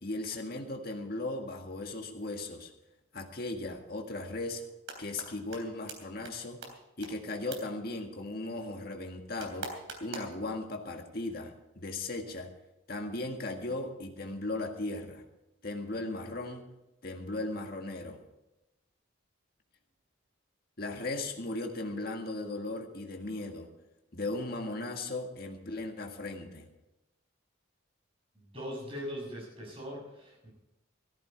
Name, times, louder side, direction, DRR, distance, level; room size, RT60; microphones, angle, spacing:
voice 1, 0.0-2.7 3.1-4.6 5.0-6.6 7.0-9.7 10.0-12.5 12.9-15.2 15.6-16.6 17.0-18.2 20.8-23.7 24.1-26.7, left 2 dB, 50° left, 3 dB, 1.8 m, -37 dB
sound 1, 4.6-5.3 5.5-5.6 5.9-6.0 6.2-6.3 6.6-6.7 7.0-7.1 7.5-7.6 9.4-10.4, right 4 dB, 70° right, 3.3 m, -40 dB
voice 2, 28.4-30.5, equal, 30° right, -2 dB, 6.9 m, -41 dB
15.0 x 13.5 x 4.6 m, 0.94 s
head